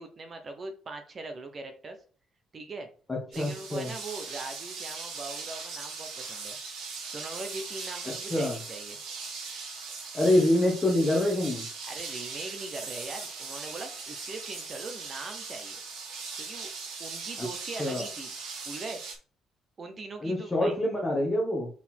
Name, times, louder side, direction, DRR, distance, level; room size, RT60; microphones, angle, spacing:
voice 1, 0.0-2.0 2.5-2.9 3.3-6.6 7.1-9.0 11.9-15.8 16.4-16.7 17.0-18.3 18.6-19.0 19.8-20.7, right 3 dB, 25° right, 6 dB, 0.9 m, -41 dB
voice 2, 3.1-3.9 8.3-8.6 10.1-11.6 17.8-18.0 20.2-21.7, left 1 dB, 10° left, -3 dB, 1.4 m, -26 dB
sound 1, 3.3-19.2, right 4 dB, 85° right, 3.1 m, -39 dB
5.9 x 4.1 x 4.4 m, 0.40 s
cardioid pair, 170°, 0 cm